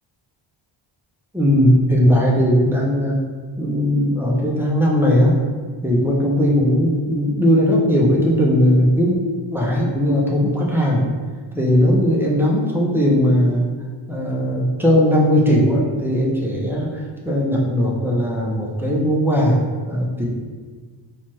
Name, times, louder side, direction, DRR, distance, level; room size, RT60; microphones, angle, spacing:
voice 1, 1.3-3.2 3.6-5.4 5.8-9.2 9.5-11.0 11.5-13.7 14.1-20.2, equal, 5° right, -4 dB, 0.3 m, -18 dB
4.2 x 2.2 x 3.0 m, 1.5 s
wide cardioid pair, 175°, 45 cm